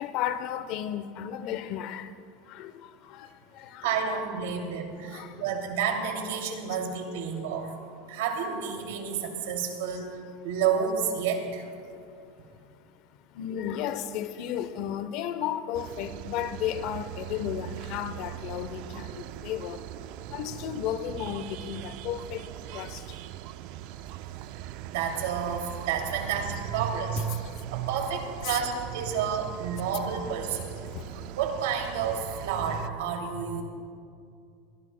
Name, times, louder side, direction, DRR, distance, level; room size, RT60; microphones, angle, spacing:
voice 1, 0.0-2.2 2.4-3.9 4.5-4.6 5.0-5.6 11.8-19.9 20.3-23.2 27.3-27.7 28.4-28.6 30.8-31.3, left 10 dB, 55° left, 0.7 m, -35 dB
voice 2, 3.8-7.7 8.1-10.2 10.4-11.7 24.9-27.3 27.6-30.8 31.4-33.6, right 7 dB, 80° right, 2.6 m, -30 dB
sound 1, 15.7-32.9, right 13 dB, 60° right, 0.4 m, -41 dB
24.0 x 17.5 x 2.2 m
supercardioid pair, 135°, 0 cm